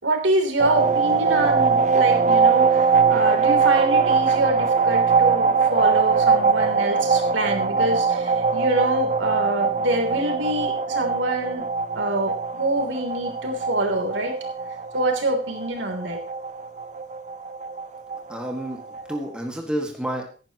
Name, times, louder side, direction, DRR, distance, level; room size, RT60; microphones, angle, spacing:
voice 1, 0.0-11.7 11.9-14.4 14.9-16.2, right 1 dB, 80° right, 2 dB, 3.2 m, -25 dB
sound 1, 0.6-19.2, right 5 dB, 40° right, 0.7 m, -22 dB
voice 2, 18.3-20.3, right 1 dB, 5° right, 1 dB, 1.8 m, -30 dB
16.5 x 10.5 x 3.0 m, 0.37 s
head